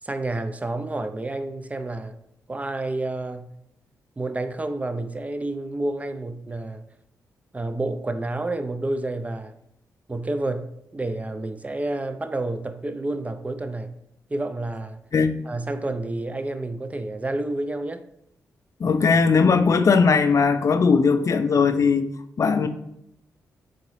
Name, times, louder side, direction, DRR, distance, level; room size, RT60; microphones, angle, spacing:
voice 1, 0.0-2.2 2.5-3.5 4.2-6.9 7.5-9.5 10.1-13.9 14.3-15.0 15.4-18.0, right 2 dB, 20° right, 10 dB, 0.4 m, -29 dB
voice 2, 18.8-22.1 22.4-22.7, left 5 dB, 45° left, 10 dB, 0.4 m, -19 dB
3.8 x 3.8 x 3.1 m, 0.76 s
supercardioid pair, 45°, 7 cm